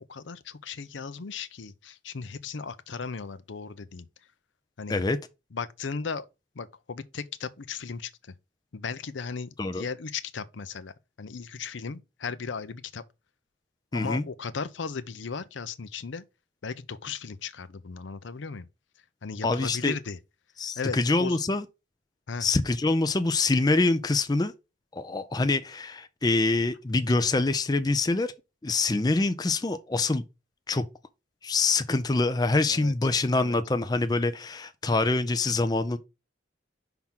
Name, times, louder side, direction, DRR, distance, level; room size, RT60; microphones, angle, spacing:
voice 1, 0.1-4.1 4.8-5.0 5.5-6.3 6.6-8.1 8.7-10.9 11.2-13.0 13.9-16.2 16.6-18.7 19.2-20.2 20.8-21.4 22.3-22.5 32.7-32.9 33.3-33.6, left 5 dB, 75° left, 0.6 m, -36 dB
voice 2, 13.9-14.2 19.4-20.0 20.6-21.6 22.4-24.5 24.9-28.3 28.6-30.2 30.7-30.9 31.4-36.0, left 3 dB, 20° left, 0.4 m, -25 dB
5.8 x 3.6 x 5.8 m
head